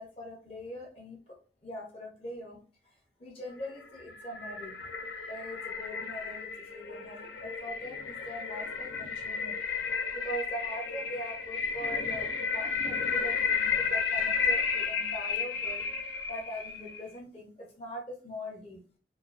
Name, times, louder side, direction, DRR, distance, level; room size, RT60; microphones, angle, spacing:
voice 1, 0.0-1.4 1.6-2.6 3.2-4.9 5.3-9.6 10.1-15.8 16.3-18.8, equal, 30° left, -1 dB, 0.6 m, -42 dB
sound 1, 3.7-17.1, left 5 dB, 80° left, 0.5 m, -33 dB
2.3 x 2.3 x 2.3 m, 0.39 s
head